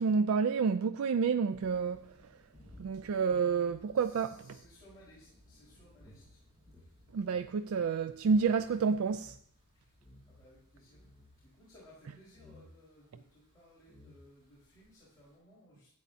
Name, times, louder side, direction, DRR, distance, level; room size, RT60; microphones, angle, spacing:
voice 1, 0.0-2.1 2.8-4.6 7.1-9.4, right 5 dB, 70° right, 0.3 m, -29 dB
sound 1, 1.4-15.4, left 1 dB, 25° right, 3.7 m, -63 dB
voice 2, 3.9-6.4 6.8-6.9 9.8-9.9 10.3-11.0 11.4-15.9, left 1 dB, 15° left, 4.4 m, -60 dB
sound 2, 6.0-8.5 8.8-8.9 9.1-9.4 10.0-10.5 10.8-11.4 12.3-12.7 13.5-13.6 13.9-14.5, left 1 dB, ahead, 2.0 m, -58 dB
12.5 x 9.0 x 2.7 m
head